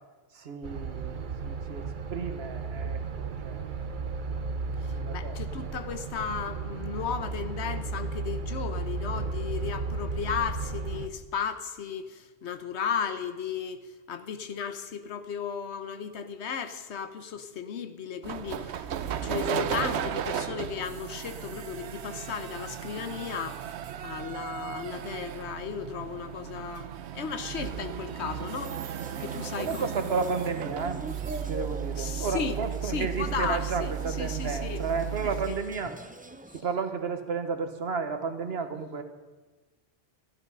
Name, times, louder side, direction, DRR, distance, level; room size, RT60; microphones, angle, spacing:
voice 1, 0.3-3.9 4.9-5.7 19.8-19.9 29.6-31.0 31.5-36.0 36.5-39.0, right 5 dB, 70° right, 8 dB, 1.4 m, -33 dB
sound 1, 0.6-11.1, right 4 dB, 50° right, 0.9 m, -34 dB
voice 2, 5.1-23.6 24.0-28.8 29.2-29.9 32.0-32.6 32.8-33.9 34.2-34.8 35.5-35.6, left 7 dB, 85° left, 10 dB, 1.2 m, -35 dB
sound 2, 18.2-35.6, right 9 dB, 85° right, 0.9 m, -35 dB
sound 3, 28.5-36.6, right 1 dB, 15° right, 0.4 m, -44 dB
13.5 x 12.5 x 5.4 m, 1.2 s
omnidirectional pair, 1.1 m